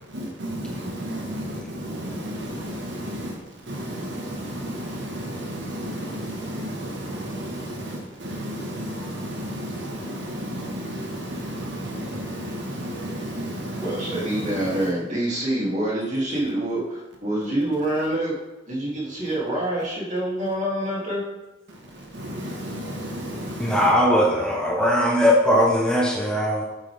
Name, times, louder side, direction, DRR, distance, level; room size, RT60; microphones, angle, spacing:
voice 1, 0.1-14.9 21.7-23.9, equal, 65° right, 0 dB, 1.5 m, -33 dB
voice 2, 13.8-18.4 18.7-21.2 24.1-24.3, right 1 dB, 40° right, -5 dB, 2.7 m, -26 dB
voice 3, 23.6-26.6, equal, 5° left, -2 dB, 1.1 m, -19 dB
8.4 x 8.3 x 3.5 m, 1.0 s
head